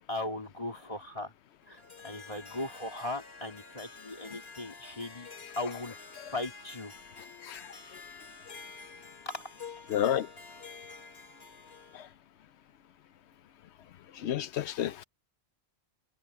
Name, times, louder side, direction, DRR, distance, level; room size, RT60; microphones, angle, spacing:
voice 1, 0.1-1.3 1.7-5.3 5.6-6.0 6.3-6.9 9.2-9.4, left 2 dB, 30° left, 3.1 m, -38 dB
Harp, 1.6-12.1, left 4 dB, 65° left, 2.8 m, -49 dB
voice 2, 7.4-8.0 9.9-10.3 11.9-12.1 14.1-15.0, left 10 dB, 80° left, 1.0 m, -32 dB
omnidirectional pair, 1.1 m